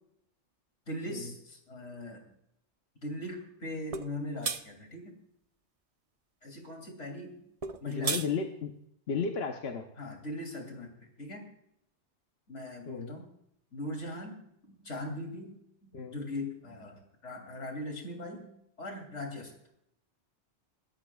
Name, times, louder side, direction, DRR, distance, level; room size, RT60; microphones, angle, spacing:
voice 1, 0.9-2.3 3.0-5.1 6.4-7.4 7.8-8.2 10.0-11.5 12.5-13.3 13.7-19.5, left 1 dB, 85° left, 3 dB, 3.3 m, -40 dB
sound 1, 3.9-4.1 4.4-4.6 7.6-8.3, right 5 dB, 40° right, 0.6 m, -32 dB
voice 2, 7.9-8.7 9.1-9.9 12.9-13.2 15.9-16.2, left 5 dB, 60° left, 4 dB, 1.2 m, -34 dB
27.0 x 13.0 x 2.4 m, 0.75 s
omnidirectional pair, 1.2 m